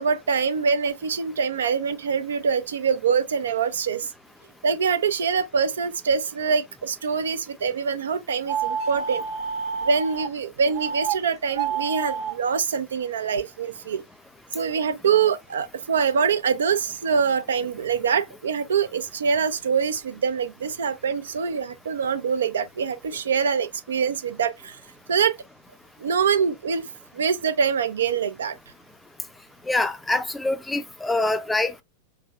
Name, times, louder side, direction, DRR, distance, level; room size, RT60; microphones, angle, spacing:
voice 1, 0.0-4.1 4.6-9.2 9.8-14.0 14.5-24.8 25.1-25.3 26.0-26.9 27.1-28.6, right 6 dB, 75° right, 0.5 m, -24 dB
sound 1, 8.5-10.3 10.7-11.1 11.5-12.3, right 6 dB, 45° right, 0.8 m, -28 dB
voice 2, 29.7-31.8, left 2 dB, 10° left, 0.5 m, -25 dB
3.4 x 3.3 x 2.3 m
figure-of-eight pair, 95°, 0 cm